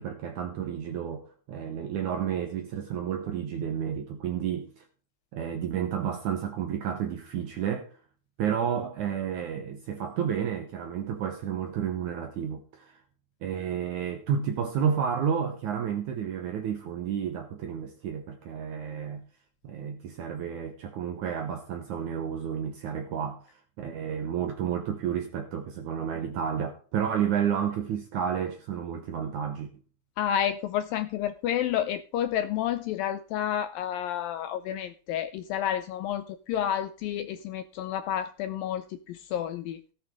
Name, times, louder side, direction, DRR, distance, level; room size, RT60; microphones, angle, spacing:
voice 1, 0.0-4.8 5.3-7.9 8.4-13.0 13.4-19.2 19.6-29.7, right 8 dB, 70° right, 1.9 m, -31 dB
voice 2, 30.2-39.8, left 10 dB, 80° left, 2.1 m, -30 dB
16.5 x 8.8 x 3.7 m
omnidirectional pair, 4.7 m